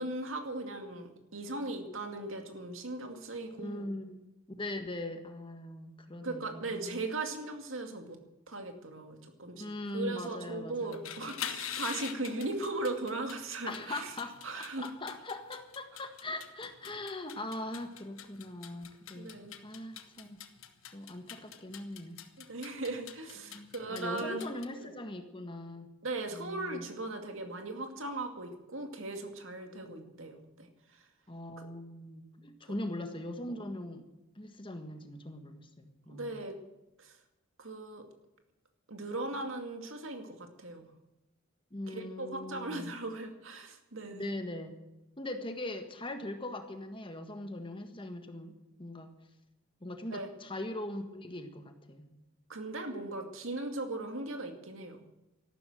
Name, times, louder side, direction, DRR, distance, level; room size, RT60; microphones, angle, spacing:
voice 1, 0.0-3.9 6.2-8.2 8.5-14.1 14.4-14.9 19.1-19.6 22.4-24.5 24.8-24.9 26.0-30.7 30.9-31.0 31.6-31.7 36.1-36.6 37.0-37.2 37.6-38.1 38.9-40.9 41.9-44.3 50.1-50.3 52.5-55.0, right 2 dB, 70° right, 5 dB, 2.3 m, -38 dB
voice 2, 3.6-4.3 4.6-7.1 9.5-11.1 13.6-19.3 19.6-20.5 20.9-22.2 23.4-25.9 26.3-26.8 29.8-30.4 31.3-34.1 34.3-36.4 41.7-42.9 44.1-44.8 45.2-49.2 49.8-52.1, left 1 dB, 25° left, 7 dB, 1.5 m, -41 dB
sound 1, 10.8-24.7, left 9 dB, 80° left, 1.3 m, -45 dB
13.5 x 12.0 x 7.8 m, 0.98 s
head